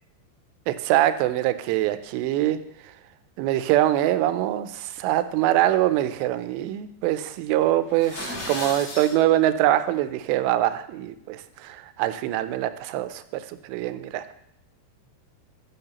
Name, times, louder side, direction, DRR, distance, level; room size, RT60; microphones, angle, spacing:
voice 1, 0.7-2.6 2.8-2.9 3.4-14.3, right 13 dB, 85° right, 11 dB, 2.7 m, -24 dB
sound 1, 7.9-9.1, left 1 dB, 45° left, 2.5 m, -34 dB
13.0 x 6.2 x 2.9 m, 0.77 s
omnidirectional pair, 4.9 m